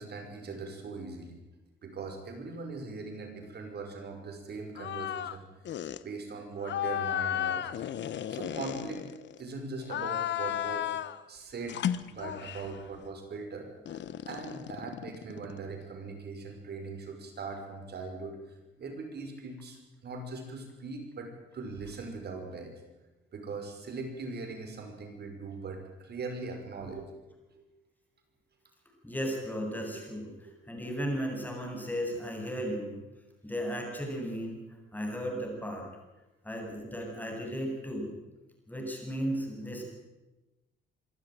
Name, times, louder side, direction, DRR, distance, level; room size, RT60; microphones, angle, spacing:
voice 1, 0.0-1.4 1.8-5.5 6.0-7.8 8.3-9.0 9.4-11.0 11.3-14.0 14.3-18.4 18.8-22.7 23.3-27.1 27.5-27.7 29.8-30.0 30.4-30.6, right 3 dB, 55° right, 4 dB, 5.7 m, -40 dB
sound 1, 4.8-5.4 5.7-6.0 6.6-9.4 9.8-11.2 11.7-12.8 13.9-15.7, left 11 dB, 65° left, 1.1 m, -34 dB
voice 2, 29.0-33.0 33.4-34.6 34.9-35.9 36.4-38.1 38.7-39.8, equal, 10° left, 1 dB, 8.0 m, -35 dB
25.0 x 13.0 x 9.4 m, 1.1 s
cardioid pair, 90°, 20 cm